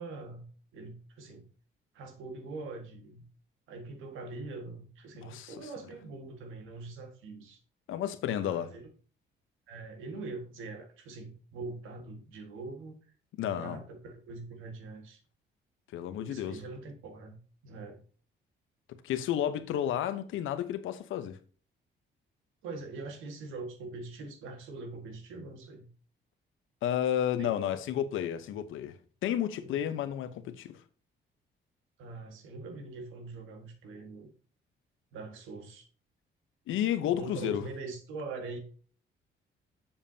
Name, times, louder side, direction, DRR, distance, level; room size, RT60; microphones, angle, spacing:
voice 1, 0.0-1.5 1.9-3.2 3.7-7.6 8.3-8.9 9.7-13.0 13.4-15.2 16.2-17.4 17.6-18.0 22.6-25.9 27.4-27.8 29.6-29.8 32.0-34.3 35.1-35.8 37.1-38.6, right 3 dB, 90° right, 1.7 m, -43 dB
voice 2, 5.2-5.5 7.9-8.7 13.4-13.8 15.9-16.6 18.9-21.4 26.8-29.0 29.2-30.8 36.7-37.7, left 10 dB, 85° left, 0.9 m, -31 dB
7.3 x 7.1 x 2.8 m
cardioid pair, 90°, 20 cm